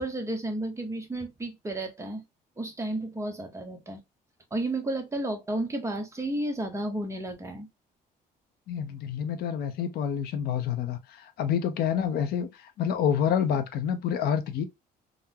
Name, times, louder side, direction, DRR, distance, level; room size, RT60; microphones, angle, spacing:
voice 1, 0.0-2.2 2.6-4.0 4.5-7.7, right 1 dB, 15° right, 0.8 m, -32 dB
voice 2, 8.7-12.5 12.8-14.7, left 8 dB, 70° left, 0.6 m, -28 dB
3.7 x 2.0 x 2.7 m
cardioid pair, 110°, 17 cm